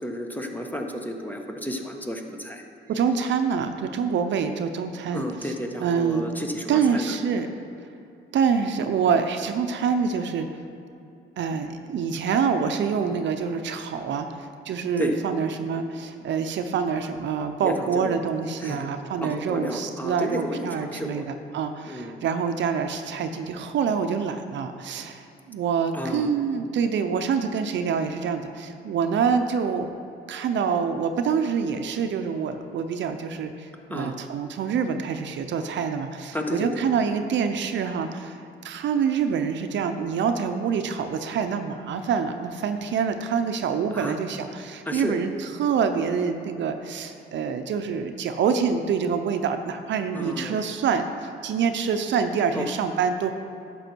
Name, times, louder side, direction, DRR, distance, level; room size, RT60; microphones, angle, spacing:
voice 1, 0.0-2.6 5.1-7.2 12.9-13.2 15.0-15.2 17.6-18.2 18.6-18.9 19.2-21.2 21.9-22.2 25.9-26.3 33.9-34.2 36.3-36.8 43.9-44.2 44.8-45.2 50.1-50.6 52.5-52.7, equal, 10° left, 3 dB, 1.2 m, -32 dB
voice 2, 2.9-5.5 5.8-6.3 6.7-7.5 8.3-10.5 11.4-29.9 30.3-38.4 38.6-53.3, right 6 dB, 65° right, 7 dB, 0.7 m, -26 dB
11.0 x 7.0 x 4.6 m, 2.7 s
cardioid pair, 90°, 20 cm